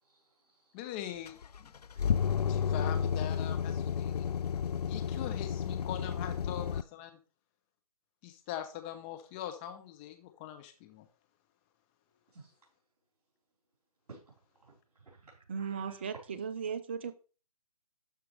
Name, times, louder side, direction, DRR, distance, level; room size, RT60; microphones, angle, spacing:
voice 1, 0.0-0.7 1.9-2.0 5.8-6.3 12.3-12.5 14.1-14.2 14.6-16.1, right 3 dB, 70° right, 4.3 m, -55 dB
voice 2, 0.7-1.7 2.5-4.3 4.9-7.2 8.2-11.1, left 11 dB, 15° left, 0.6 m, -42 dB
sound 1, 1.3-6.8, left 7 dB, 75° left, 0.5 m, -32 dB
voice 3, 15.5-17.2, right 6 dB, 15° right, 0.4 m, -37 dB
12.5 x 4.8 x 3.3 m
figure-of-eight pair, 150°, 20 cm